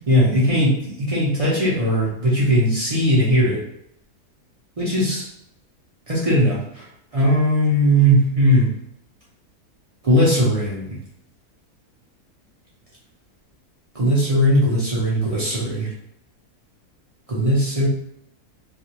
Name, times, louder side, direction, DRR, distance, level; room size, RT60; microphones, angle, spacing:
voice 1, 0.1-3.6 4.8-5.3 6.1-6.8 7.1-8.7 10.0-10.9 13.9-15.9 17.3-17.9, equal, 55° right, -6 dB, 0.3 m, -19 dB
2.5 x 2.3 x 2.8 m, 0.77 s
omnidirectional pair, 1.6 m